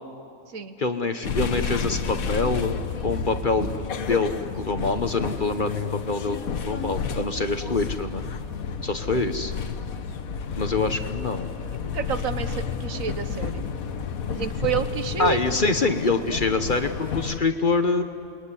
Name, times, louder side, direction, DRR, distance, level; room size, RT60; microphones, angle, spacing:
voice 1, 0.8-6.4 6.6-8.2 8.8-9.5 10.6-11.5 15.2-18.0, left 3 dB, 40° left, 8 dB, 1.1 m, -25 dB
sound 1, 1.2-17.4, left 6 dB, 70° left, 1.5 m, -31 dB
voice 2, 11.9-13.6 14.2-15.6, right 7 dB, 65° right, 10 dB, 1.4 m, -29 dB
28.0 x 21.5 x 9.9 m, 2.4 s
omnidirectional pair, 1.5 m